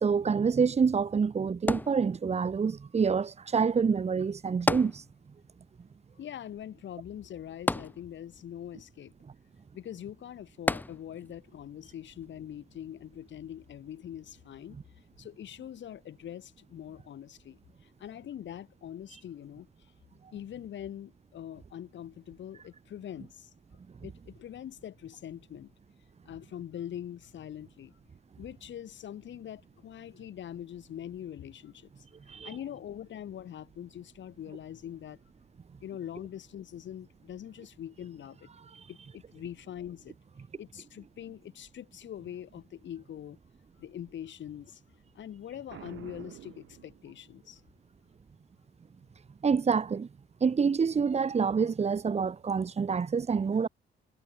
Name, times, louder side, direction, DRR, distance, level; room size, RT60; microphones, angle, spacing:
voice 1, 0.0-5.0 32.3-32.5 49.4-50.1 50.4-53.7, right 5 dB, 35° right, 1.3 m, -27 dB
sound 1, 1.7-2.6 4.7-5.5 5.8-5.9 7.7-8.5 10.7-11.4 12.1-12.2, left 2 dB, 10° left, 0.6 m, -31 dB
voice 2, 6.2-9.1 9.7-14.8 15.2-19.7 20.3-23.5 24.0-25.7 26.3-28.0 28.4-32.1 32.4-35.2 35.8-38.5 38.9-40.2 40.6-43.4 43.8-44.8 45.1-47.6, left 10 dB, 70° left, 7.0 m, -43 dB
Boom, 45.7-47.5, right 13 dB, 80° right, 2.7 m, -48 dB
cardioid pair, 90°, 20 cm